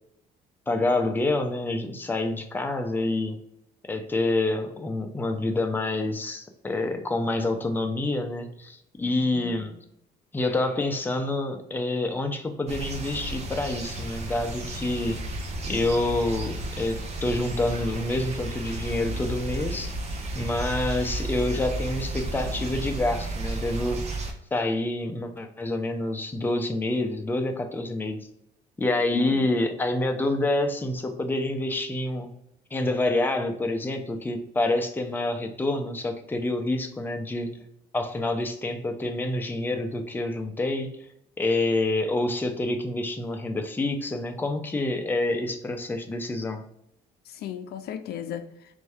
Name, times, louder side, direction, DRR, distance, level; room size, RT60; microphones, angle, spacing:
voice 1, 0.7-3.4 3.9-9.8 10.3-15.2 15.6-20.0 20.3-24.1 24.5-28.3 28.8-32.3 32.7-37.6 37.9-40.9 41.4-46.7, left 2 dB, 10° left, 5 dB, 0.6 m, -27 dB
voice 2, 9.2-9.6 29.1-29.5 47.3-48.5, left 9 dB, 70° left, 9 dB, 0.5 m, -36 dB
sound 1, 12.7-24.3, right 2 dB, 40° right, 0.9 m, -33 dB
4.4 x 2.7 x 3.4 m, 0.75 s
cardioid pair, 110°, 17 cm